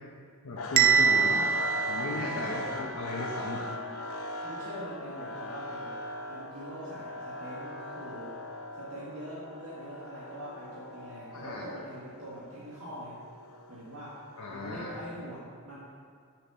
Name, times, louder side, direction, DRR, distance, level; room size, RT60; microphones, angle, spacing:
voice 1, 0.4-1.5 1.9-3.7 11.3-11.6 14.4-14.9, left 2 dB, 90° left, -3 dB, 1.0 m, -37 dB
sound 1, 0.6-14.7, left 2 dB, 70° left, 0.6 m, -40 dB
Bell, 0.8-2.8, right 6 dB, 40° right, 0.3 m, -25 dB
voice 2, 2.3-2.6 4.4-6.0 6.3-8.4 8.7-13.2 13.7-14.2 14.5-15.9, right 1 dB, 80° right, -9 dB, 1.8 m, -43 dB
6.0 x 5.6 x 6.8 m, 2.2 s
head